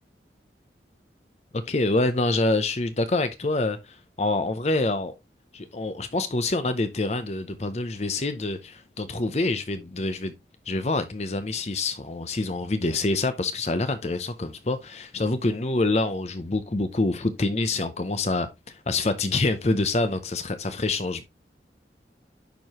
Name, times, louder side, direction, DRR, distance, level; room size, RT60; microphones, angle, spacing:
voice 1, 1.7-5.1 5.5-10.3 10.7-21.2, left 2 dB, 35° left, 0.6 m, -26 dB
10.5 x 4.7 x 2.9 m
head